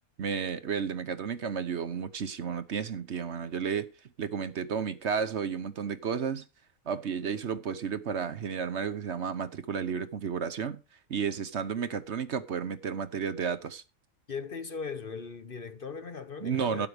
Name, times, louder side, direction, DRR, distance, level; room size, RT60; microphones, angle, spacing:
voice 1, 0.2-3.9 4.2-6.4 6.9-10.8 11.1-13.8 16.4-16.9, right 6 dB, 55° right, 1.1 m, -32 dB
voice 2, 14.3-16.9, left 5 dB, 45° left, 1.0 m, -38 dB
12.5 x 9.3 x 4.9 m
omnidirectional pair, 1.4 m